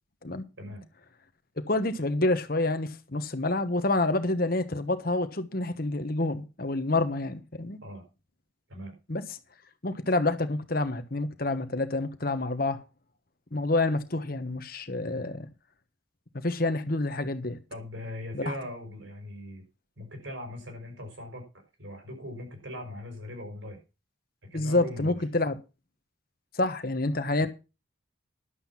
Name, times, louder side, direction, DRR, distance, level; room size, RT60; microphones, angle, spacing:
voice 1, 1.6-7.8 9.1-9.4 9.8-12.8 13.5-15.5 16.3-17.6 18.3-18.5 24.5-25.5 26.5-27.5, left 2 dB, 45° left, 1.2 m, -28 dB
voice 2, 17.7-19.6 20.0-21.5 21.8-23.8 24.5-25.2 27.4-27.5, left 1 dB, 70° right, 5.7 m, -40 dB
11.5 x 7.9 x 5.8 m
head